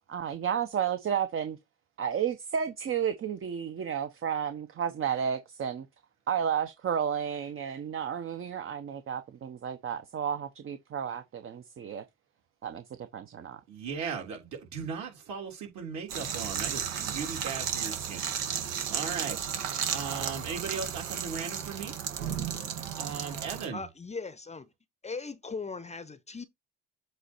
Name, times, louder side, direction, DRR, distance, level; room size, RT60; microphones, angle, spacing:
voice 1, 0.1-1.6 2.0-5.9 6.3-12.0 12.6-13.6, right 8 dB, 40° right, 0.9 m, -32 dB
voice 2, 13.7-19.5 19.9-21.9 23.0-23.8, right 6 dB, 60° right, 3.5 m, -37 dB
sound 1, 16.1-23.7, right 8 dB, 80° right, 1.7 m, -34 dB
voice 3, 23.7-24.7 25.0-26.4, left 4 dB, 20° left, 0.8 m, -39 dB
7.9 x 3.0 x 4.4 m
hypercardioid pair, 65°, 33 cm